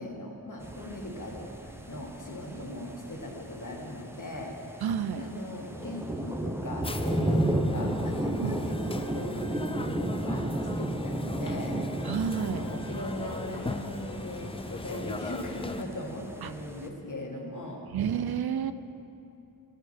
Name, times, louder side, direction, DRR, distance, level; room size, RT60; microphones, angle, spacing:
voice 1, 0.0-4.5 5.2-10.5 10.7-12.0 12.3-17.8, left 1 dB, 55° left, 0 dB, 1.6 m, -39 dB
sound 1, 0.6-16.9, right 1 dB, 5° right, 0.7 m, -34 dB
voice 2, 4.8-5.3 8.4-8.6 12.0-12.6 16.4-16.5 17.9-18.7, right 8 dB, 80° right, 11 dB, 0.5 m, -30 dB
sound 2, 6.8-15.8, left 3 dB, 15° left, 0.3 m, -39 dB
15.5 x 6.8 x 4.4 m, 2.8 s
wide cardioid pair, 90°, 37 cm